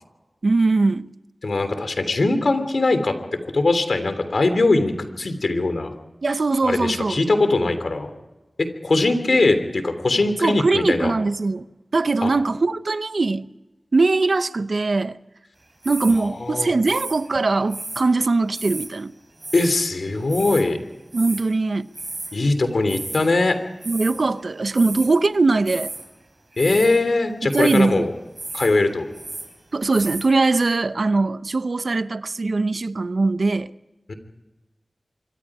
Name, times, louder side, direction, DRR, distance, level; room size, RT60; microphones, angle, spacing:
voice 1, 0.4-1.1 6.2-7.2 10.4-11.7 11.9-13.5 13.9-15.2 15.8-19.1 21.1-21.9 23.9-25.9 27.4-28.1 29.7-33.7, right 3 dB, 75° right, 0.8 m, -21 dB
voice 2, 1.4-3.1 3.4-4.9 5.2-5.9 6.6-8.1 8.6-11.1 12.2-12.3 16.4-16.7 19.5-20.8 22.3-23.6 26.6-28.1 28.5-29.0 34.1-34.2, left 2 dB, 80° left, 3.1 m, -21 dB
sound 1, 15.8-16.3 16.8-18.0 18.5-18.9 19.4-19.8 20.1-20.7 21.1-21.5 21.9-22.4 22.7-23.3 23.8-24.2 24.7-25.2 25.6-26.1 26.5-27.0 27.5-27.9 28.3-28.7 29.0-29.5 29.9-30.3, right 2 dB, 45° right, 4.5 m, -34 dB
26.0 x 23.5 x 4.9 m
wide cardioid pair, 70°, 0 cm